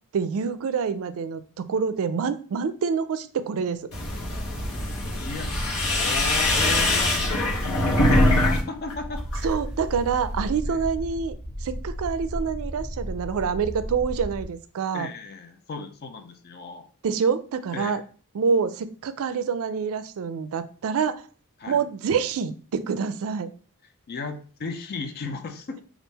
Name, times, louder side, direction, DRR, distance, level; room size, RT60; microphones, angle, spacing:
voice 1, 0.1-1.4 1.7-3.9 9.4-11.3 11.6-15.1 17.0-18.0 18.3-21.2 21.7-23.5, right 6 dB, 65° right, 13 dB, 0.4 m, -26 dB
sound 1, 3.9-8.6 8.9-9.5, left 1 dB, 75° left, 1.0 m, -23 dB
voice 2, 5.0-9.2 10.7-10.8 14.9-16.9 17.7-18.0 21.6-21.8 24.1-25.8, left 4 dB, 45° left, 7 dB, 0.5 m, -36 dB
sound 2, 5.5-14.4, equal, ahead, 0.8 m, -34 dB
3.6 x 2.4 x 4.0 m, 0.41 s
head